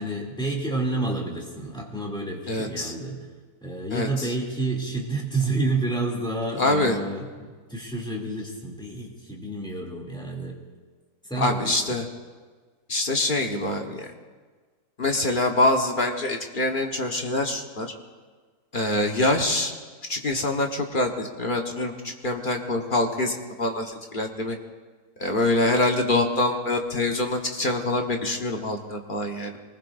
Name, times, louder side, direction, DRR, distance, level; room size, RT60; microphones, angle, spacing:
voice 1, 0.0-3.2 3.6-10.6 11.2-12.0, right 2 dB, 5° left, -2 dB, 2.6 m, -29 dB
voice 2, 2.5-2.9 3.9-4.3 6.6-7.0 11.3-12.1 12.9-14.1 15.0-17.9 18.7-19.7 20.1-24.6 25.2-29.6, left 2 dB, 35° left, 2 dB, 1.3 m, -25 dB
23.5 x 20.0 x 2.6 m, 1.5 s
omnidirectional pair, 1.6 m